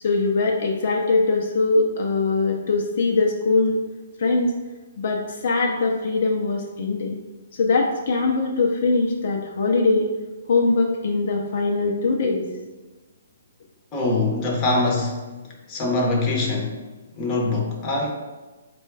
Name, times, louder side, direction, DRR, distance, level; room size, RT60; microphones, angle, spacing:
voice 1, 0.0-3.8 4.2-4.5 5.0-7.1 7.6-10.1 10.5-12.4, left 3 dB, 55° left, 0 dB, 0.5 m, -21 dB
voice 2, 13.9-15.3 15.7-16.8 17.2-18.1, left 2 dB, 20° left, -1 dB, 0.8 m, -23 dB
4.2 x 2.3 x 4.6 m, 1.2 s
hypercardioid pair, 155°, 0 cm